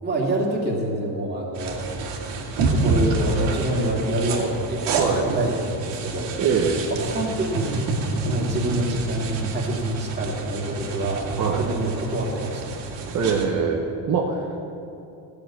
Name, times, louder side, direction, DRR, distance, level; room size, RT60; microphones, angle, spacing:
voice 1, 0.0-1.9 2.6-5.0 5.2-6.3 6.9-7.8 8.2-12.7, right 1 dB, 25° right, -3 dB, 2.6 m, -26 dB
sound 1, 1.5-13.5, right 3 dB, 80° right, 2.1 m, -28 dB
voice 2, 4.9-5.3 6.4-6.8 11.4-11.6 13.1-14.6, right 5 dB, 40° right, 0 dB, 1.2 m, -23 dB
15.5 x 6.8 x 8.7 m, 2.7 s
cardioid pair, 160°, 44 cm